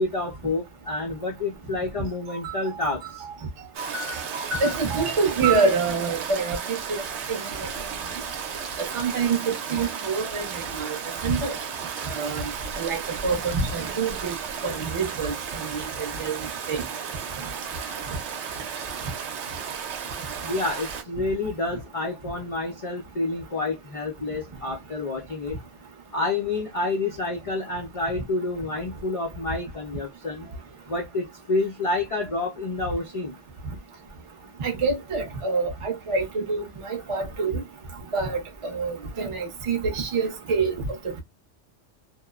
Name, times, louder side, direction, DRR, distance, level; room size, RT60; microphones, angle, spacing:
voice 1, 0.0-3.3 20.4-25.6 26.1-30.5 30.9-33.4, left 2 dB, 50° left, 0.4 m, -29 dB
voice 2, 2.3-3.0 3.2-3.3 3.8-7.0 7.3-7.7 8.8-11.0 11.2-11.5 12.1-12.5 12.7-14.4 14.6-16.8 34.6-37.6 38.1-40.9, right 4 dB, 30° right, 0.6 m, -27 dB
Stream, 3.7-21.0, right 7 dB, 70° right, 0.9 m, -34 dB
2.9 x 2.0 x 2.3 m
omnidirectional pair, 1.2 m